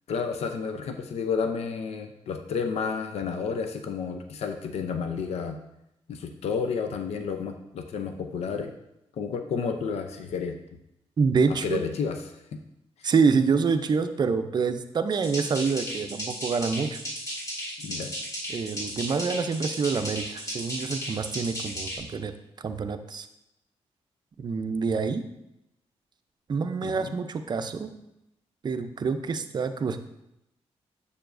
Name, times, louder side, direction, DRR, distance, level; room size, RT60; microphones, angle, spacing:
voice 1, 0.1-5.6 6.1-8.7 9.1-10.5 11.5-12.6 17.8-18.1 26.8-27.1, left 5 dB, 75° left, 6 dB, 0.5 m, -31 dB
voice 2, 11.2-11.8 13.0-17.0 18.5-22.3 22.6-23.3 24.4-25.2 26.5-27.9 28.6-30.0, right 5 dB, 40° right, 8 dB, 0.5 m, -26 dB
sound 1, 15.1-22.0, equal, 30° left, 2.0 m, -35 dB
6.9 x 6.8 x 2.6 m, 0.85 s
cardioid pair, 105°, 11 cm